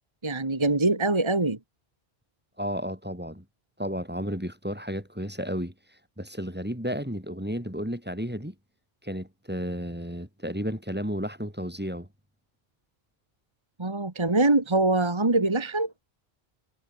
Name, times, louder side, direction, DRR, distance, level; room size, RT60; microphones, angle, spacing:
voice 1, 0.2-1.6 13.8-15.9, right 2 dB, 25° right, 1.7 m, -23 dB
voice 2, 2.6-3.4 3.8-5.7 6.2-8.5 9.0-12.1, equal, 10° right, 5.1 m, -32 dB
omnidirectional pair, 1.0 m